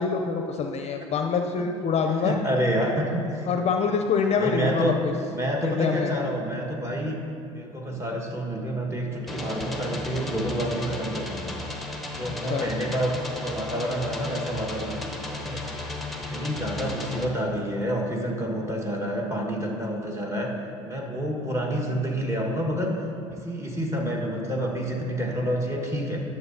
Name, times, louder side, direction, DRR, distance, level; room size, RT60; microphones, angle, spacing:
voice 1, 0.0-2.4 3.5-5.1 5.6-6.1 12.5-12.7, left 5 dB, 40° left, 4 dB, 0.5 m, -25 dB
voice 2, 2.2-3.5 4.4-5.0 5.3-7.2 7.5-11.5 12.1-15.8 16.2-20.5 20.8-22.9 23.3-26.2, equal, 15° right, -1 dB, 1.5 m, -28 dB
sound 1, 9.3-17.3, left 2 dB, ahead, 0.9 m, -35 dB
11.5 x 6.6 x 2.7 m, 2.7 s
hypercardioid pair, 75°, 17 cm